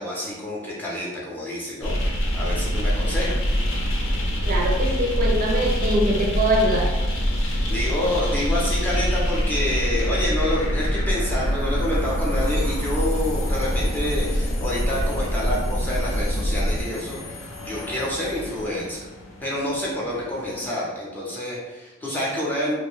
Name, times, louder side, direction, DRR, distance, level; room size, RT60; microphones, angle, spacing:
voice 1, 0.0-3.4 7.4-19.1 19.4-22.7, left 1 dB, 10° left, -6 dB, 0.5 m, -28 dB
sound 1, 1.8-20.7, equal, 65° left, 0.5 m, -25 dB
voice 2, 4.4-6.9, right 1 dB, 40° right, -1 dB, 0.4 m, -23 dB
2.5 x 2.1 x 3.2 m, 1.2 s
head